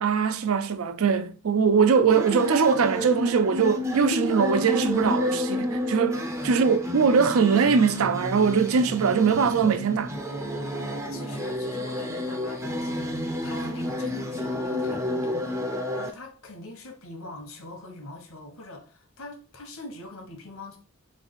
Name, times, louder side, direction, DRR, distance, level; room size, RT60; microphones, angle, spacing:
voice 1, 0.0-10.1, right 6 dB, 75° right, 0.4 m, -22 dB
sound 1, 2.1-16.1, left 1 dB, 15° right, 0.5 m, -30 dB
voice 2, 11.1-13.2 13.4-15.7 16.0-20.8, left 2 dB, 70° left, 1.0 m, -43 dB
3.5 x 3.2 x 3.9 m
head